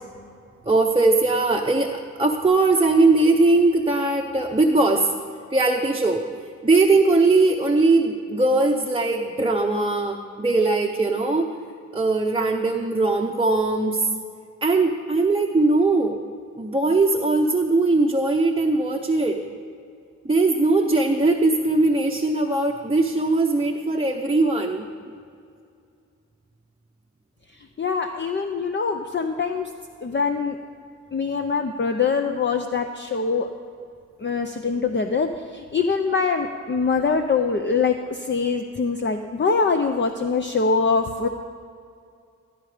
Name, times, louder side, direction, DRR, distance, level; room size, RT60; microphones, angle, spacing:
voice 1, 0.7-5.1 5.5-6.2 6.6-11.5 11.9-14.1 14.6-16.2 16.6-19.4 20.2-25.1 34.7-34.8, right 3 dB, 20° right, 1 dB, 0.7 m, -20 dB
voice 2, 27.8-29.7 30.0-30.6 31.1-33.5 34.2-41.3, left 5 dB, 40° left, 5 dB, 0.6 m, -23 dB
13.0 x 12.0 x 5.0 m, 2.3 s
wide cardioid pair, 100°, 30 cm